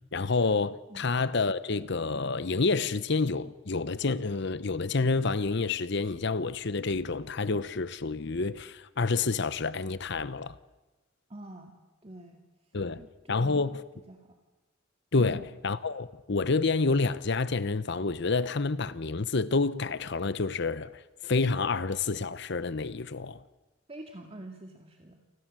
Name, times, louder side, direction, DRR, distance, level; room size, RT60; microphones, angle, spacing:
voice 1, 0.1-10.6 12.7-13.0 13.3-13.8 15.1-23.4, left 3 dB, 55° left, 0.8 m, -28 dB
voice 2, 11.3-11.7 12.0-12.4 13.0-13.8 14.1-14.4 15.2-15.4 23.9-25.2, right 1 dB, 30° right, 2.1 m, -46 dB
29.5 x 25.0 x 7.6 m
head